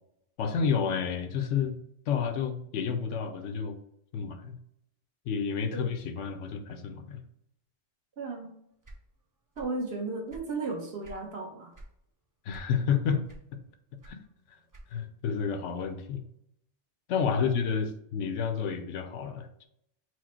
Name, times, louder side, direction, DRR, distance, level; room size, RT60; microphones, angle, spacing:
voice 1, 0.4-1.8 2.1-3.8 4.1-4.6 5.3-7.2 12.5-13.2 14.0-14.2 14.9-16.2 17.1-19.7, left 6 dB, 80° left, 8 dB, 0.9 m, -30 dB
voice 2, 8.2-8.5 9.6-11.7, right 3 dB, 60° right, 0 dB, 1.2 m, -35 dB
sound 1, 8.8-9.8 10.1-11.3 11.7-12.0 12.5-12.9 13.3-15.2, right 1 dB, 35° right, 0.3 m, -49 dB
4.6 x 2.0 x 4.3 m, 0.74 s
omnidirectional pair, 1.2 m